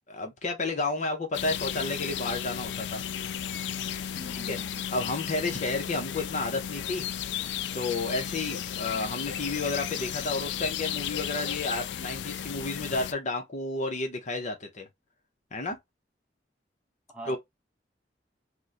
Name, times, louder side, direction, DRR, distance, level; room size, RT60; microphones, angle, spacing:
voice 1, 0.1-3.0 4.5-4.6 4.9-7.0 7.7-14.9 15.5-15.8 17.3-17.4, left 3 dB, 45° left, 0.7 m, -31 dB
sound 1, 1.3-13.1, left 9 dB, 75° left, 0.3 m, -34 dB
voice 2, 4.2-5.0 17.1-17.4, right 1 dB, 5° right, 1.0 m, -44 dB
3.0 x 2.1 x 3.7 m
head